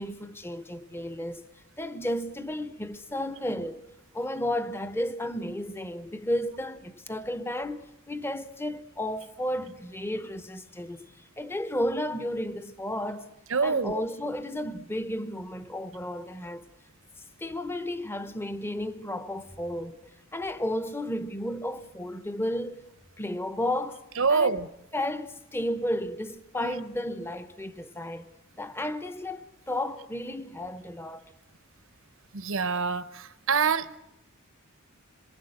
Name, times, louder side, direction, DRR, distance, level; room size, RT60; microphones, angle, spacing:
voice 1, 0.0-1.4 1.8-3.9 4.1-11.1 11.4-13.3 13.6-16.7 17.4-22.9 23.2-24.0 24.3-24.6 24.9-28.3 28.6-31.3, left 1 dB, 10° left, 0.9 m, -33 dB
voice 2, 13.5-14.0 24.2-24.7 26.6-26.8 32.3-34.0, right 5 dB, 65° right, 0.9 m, -26 dB
27.0 x 22.5 x 7.9 m
head